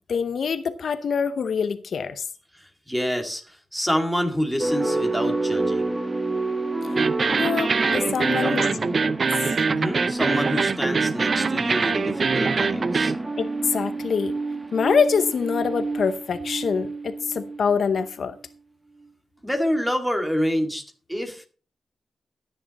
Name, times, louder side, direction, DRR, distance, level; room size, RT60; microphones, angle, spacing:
voice 1, 0.1-2.2 7.4-8.7 9.0-9.1 13.4-14.4 14.7-18.4, left 6 dB, 60° left, 0.8 m, -25 dB
voice 2, 2.5-5.9 8.4-9.0 9.7-13.1 19.4-20.8 21.1-21.5, equal, 5° right, 2.1 m, -27 dB
sound 1, 4.6-18.0, right 2 dB, 20° right, 1.4 m, -29 dB
sound 2, 7.0-13.2, right 5 dB, 40° right, 0.6 m, -23 dB
13.0 x 9.9 x 4.1 m
wide cardioid pair, 165°, 0 cm